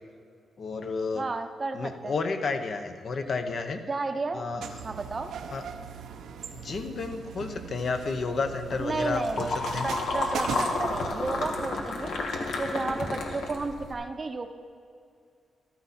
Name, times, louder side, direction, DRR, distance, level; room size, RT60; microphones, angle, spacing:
voice 1, 0.6-1.3 1.7-3.8 4.3-4.6 5.5-5.6 6.5-9.9, left 4 dB, 50° left, 7 dB, 0.8 m, -31 dB
voice 2, 1.1-2.1 3.9-4.5 4.8-5.3 8.8-9.5 9.8-12.2 12.6-14.5, right 3 dB, 25° right, 7 dB, 0.7 m, -32 dB
sound 1, 4.6-11.7, right 7 dB, 85° right, 0.7 m, -39 dB
sound 2, 8.7-13.9, left 3 dB, 75° left, 1.5 m, -31 dB
13.5 x 12.5 x 4.3 m, 2.3 s
cardioid pair, 135°, 0 cm